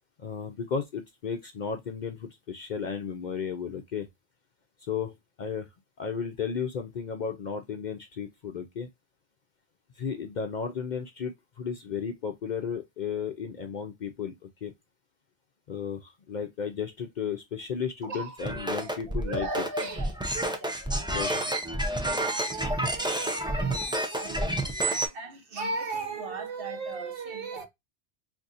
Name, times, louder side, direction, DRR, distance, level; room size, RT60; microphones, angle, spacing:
voice 1, 0.2-4.1 4.8-5.7 6.0-8.9 10.0-14.7 15.7-19.5 21.1-21.4, left 6 dB, 55° left, 0.6 m, -34 dB
voice 2, 18.0-18.4 18.7-21.2 21.7-27.6, right 2 dB, 60° right, 1.1 m, -37 dB
sound 1, 18.4-25.1, right 1 dB, 5° right, 0.4 m, -29 dB
4.0 x 2.6 x 2.4 m
omnidirectional pair, 1.1 m